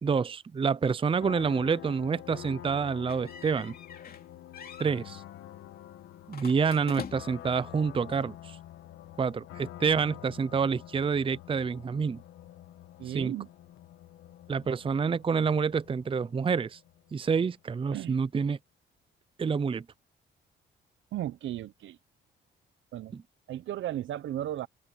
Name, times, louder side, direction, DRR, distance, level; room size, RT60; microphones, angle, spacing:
voice 1, 0.0-3.7 4.8-5.2 6.3-8.6 9.2-12.2 13.1-13.3 14.5-16.8 17.1-18.6 19.4-19.8, right 5 dB, 25° right, 0.6 m, -28 dB
sound 1, 1.2-17.7, left 12 dB, 80° left, 1.4 m, -48 dB
sound 2, 3.1-4.3 4.5-4.9 6.3-7.5, left 7 dB, 50° left, 2.9 m, -43 dB
voice 2, 13.0-13.5 17.9-18.2 21.1-22.0 22.9-23.1 23.5-24.7, right 12 dB, 75° right, 1.0 m, -35 dB
open air
cardioid pair, 90°, 20 cm